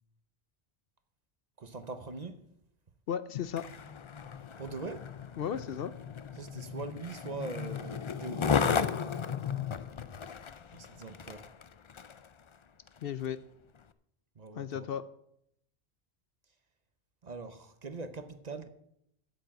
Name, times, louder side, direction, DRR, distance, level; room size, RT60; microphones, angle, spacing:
voice 1, 1.6-2.4 4.6-5.1 6.4-9.1 10.7-11.5 14.4-14.9 17.2-18.7, right 3 dB, 40° right, 0.9 m, -42 dB
voice 2, 3.1-3.7 5.4-5.9 13.0-13.4 14.5-15.0, left 9 dB, 65° left, 0.7 m, -34 dB
Skateboard, 3.4-12.3 12.9-13.0, left 6 dB, 45° left, 0.4 m, -35 dB
8.7 x 8.2 x 7.5 m
omnidirectional pair, 1.1 m